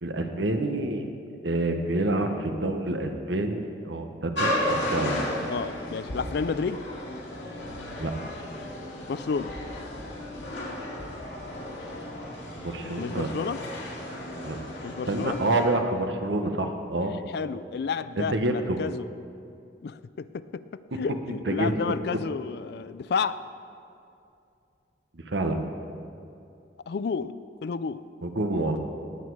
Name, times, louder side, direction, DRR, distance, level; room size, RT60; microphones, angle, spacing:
voice 1, 0.0-1.0 1.4-5.2 8.0-8.1 12.6-13.3 14.4-14.6 15.1-17.2 18.2-18.8 21.5-21.9 25.3-25.6 28.2-28.8, right 2 dB, 80° right, 5 dB, 1.1 m, -27 dB
sound 1, 4.4-15.7, left 1 dB, 80° left, 2.3 m, -34 dB
voice 2, 5.5-6.9 9.1-9.5 12.9-13.6 14.8-15.4 17.3-19.1 19.8-23.4 26.9-27.3 27.6-28.0, left 5 dB, 60° left, 15 dB, 0.4 m, -31 dB
19.0 x 8.4 x 4.8 m, 2.5 s
head